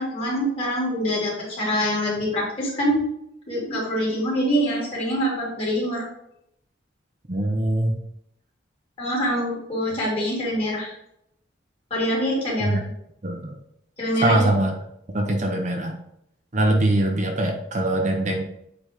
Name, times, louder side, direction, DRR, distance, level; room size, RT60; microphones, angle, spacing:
voice 1, 0.0-3.0 3.5-6.1 9.0-10.9 11.9-12.8 14.0-14.4, equal, 30° left, -5 dB, 2.8 m, -25 dB
voice 2, 7.3-7.9 12.6-12.8 13.2-13.5 14.2-14.8 15.1-16.0 16.5-18.4, right 1 dB, 40° right, 2 dB, 0.8 m, -22 dB
8.1 x 4.1 x 3.6 m, 0.77 s
head